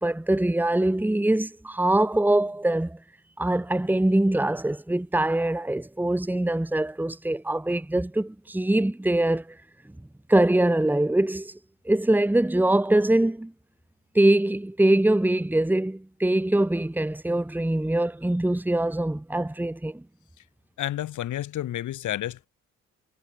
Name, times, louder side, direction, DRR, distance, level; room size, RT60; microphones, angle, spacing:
voice 1, 0.0-3.0 3.4-9.6 10.3-11.6 11.9-13.5 14.2-20.0, right 1 dB, 5° right, 1.7 m, -23 dB
voice 2, 20.8-22.5, left 12 dB, 75° left, 3.8 m, -30 dB
cardioid pair, 90°, 30 cm